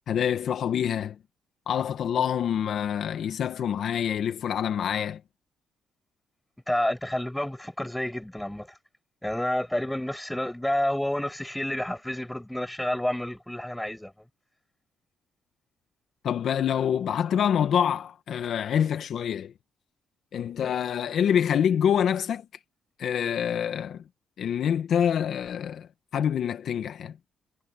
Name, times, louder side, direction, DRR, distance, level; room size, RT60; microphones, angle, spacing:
voice 1, 0.1-1.2 1.7-5.2 16.2-19.5 20.3-22.4 23.0-24.0 24.4-27.1, left 8 dB, 65° left, 1.5 m, -26 dB
voice 2, 6.7-8.7 9.2-14.3 20.6-20.7, left 1 dB, 5° left, 7.0 m, -29 dB
cardioid pair, 90°, 0 cm